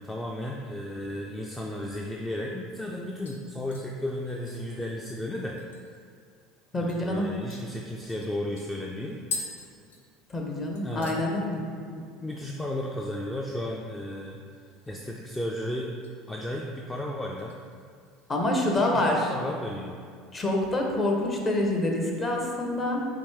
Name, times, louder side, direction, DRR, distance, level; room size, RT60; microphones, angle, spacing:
voice 1, 0.0-5.6 6.7-9.2 10.8-11.2 11.9-14.4 14.9-15.9 16.3-17.6 18.9-20.0, left 1 dB, 15° left, -1 dB, 0.4 m, -34 dB
sound 1, 3.3-6.1 6.4-6.5 6.9-7.0 7.5-10.5 10.7-11.3 11.6-12.0 12.3-12.4 14.5-15.1 15.4-16.1 16.5-16.8 17.4-18.3 18.6-18.7, left 4 dB, 80° left, 0.5 m, -43 dB
voice 2, 6.7-7.3 10.3-11.6 18.3-19.3 20.3-23.1, left 1 dB, 30° left, 0 dB, 0.8 m, -26 dB
5.1 x 2.7 x 3.2 m, 2.2 s
hypercardioid pair, 75°, 0 cm